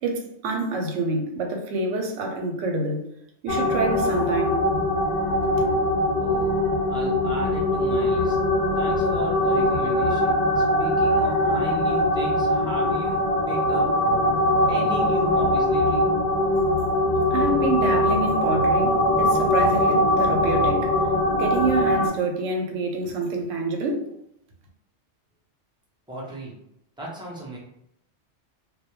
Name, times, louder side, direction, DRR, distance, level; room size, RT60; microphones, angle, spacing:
voice 1, 0.0-3.1 3.4-4.6 5.6-5.7 17.3-20.9 21.3-24.1, right 2 dB, 85° right, 3 dB, 0.9 m, -27 dB
sound 1, 3.5-22.1, left 1 dB, 60° left, 0.6 m, -22 dB
voice 2, 6.2-6.5 6.9-8.4 8.8-13.9 14.7-16.1 26.1-26.5 27.0-27.6, equal, 5° right, -5 dB, 0.3 m, -36 dB
2.2 x 2.1 x 2.9 m, 0.79 s
omnidirectional pair, 1.3 m